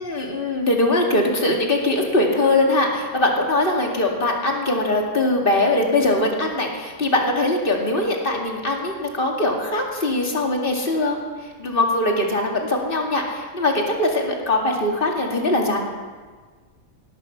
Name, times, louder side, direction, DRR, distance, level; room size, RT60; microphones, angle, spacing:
voice 1, 0.0-11.2 11.6-15.8, left 2 dB, 35° left, 1 dB, 2.4 m, -21 dB
18.5 x 11.5 x 5.7 m, 1.5 s
omnidirectional pair, 1.6 m